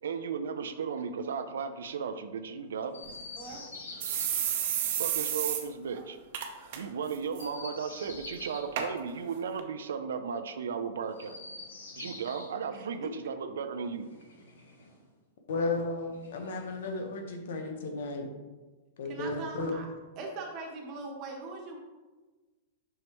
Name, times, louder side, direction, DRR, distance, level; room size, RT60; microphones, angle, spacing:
voice 1, 0.0-3.0 4.9-6.2 6.7-11.4 12.0-14.1, right 6 dB, 80° right, 9 dB, 0.5 m, -35 dB
Chirp tweet, 2.9-4.3 7.3-8.7 11.1-12.5 13.9-15.0 16.1-17.0, left 3 dB, 90° left, 1.5 m, -46 dB
sound 1, 3.1-3.2 3.5-3.6 4.0-5.6 6.0-6.1 6.3-6.8 7.1-7.4 8.1-8.2 8.8-8.9 9.6-9.7, right 9 dB, 60° right, 0.9 m, -31 dB
voice 2, 3.3-3.9 12.7-13.1 19.0-19.9 20.2-21.8, right 3 dB, 45° right, 1 dB, 1.5 m, -41 dB
voice 3, 15.5-18.3 19.0-19.7, left 3 dB, 75° left, 4 dB, 1.2 m, -34 dB
7.5 x 5.6 x 3.0 m, 1.3 s
hypercardioid pair, 120°, 0 cm